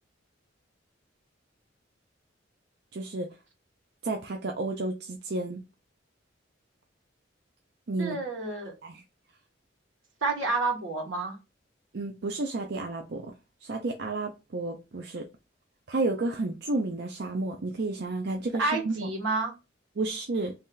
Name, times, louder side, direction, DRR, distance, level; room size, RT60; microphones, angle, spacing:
voice 1, 2.9-3.3 4.0-5.6 7.9-8.2 8.8-9.0 11.9-13.3 13.6-15.3 15.9-19.1 20.0-20.5, right 2 dB, 55° right, 0.5 m, -31 dB
voice 2, 8.0-8.7 10.2-11.3 18.6-19.5, right 3 dB, 85° right, 1.6 m, -29 dB
3.2 x 2.8 x 3.7 m
head